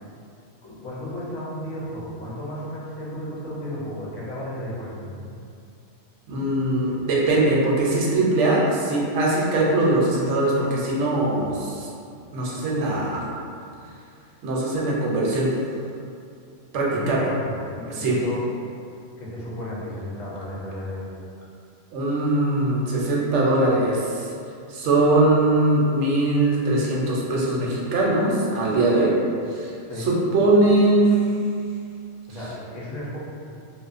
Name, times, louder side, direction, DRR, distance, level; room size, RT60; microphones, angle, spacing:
voice 1, 0.6-5.2 16.9-18.4 19.2-21.1 29.8-30.1 32.3-33.2, left 1 dB, 80° left, -7 dB, 1.1 m, -33 dB
voice 2, 6.3-11.9 12.3-13.2 14.4-15.5 16.7-17.2 17.9-18.2 21.9-24.3 24.7-29.1 29.5-29.7 30.0-31.2, right 2 dB, 75° right, -4 dB, 0.9 m, -21 dB
2.8 x 2.1 x 2.4 m, 2.4 s
omnidirectional pair, 1.3 m